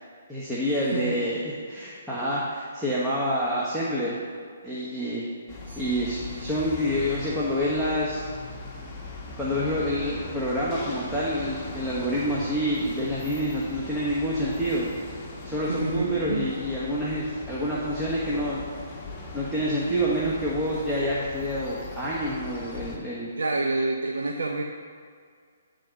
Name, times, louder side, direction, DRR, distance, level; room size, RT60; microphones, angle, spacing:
voice 1, 0.3-4.2 4.6-8.3 9.4-14.9 15.4-18.6 19.3-23.3, equal, 5° right, -8 dB, 1.2 m, -27 dB
sound 1, 5.5-23.0, left 3 dB, 20° left, 1.3 m, -39 dB
voice 2, 15.7-16.5 23.4-24.6, right 3 dB, 75° right, 2 dB, 0.6 m, -28 dB
10.0 x 3.8 x 5.1 m, 2.1 s
figure-of-eight pair, 135°, 0 cm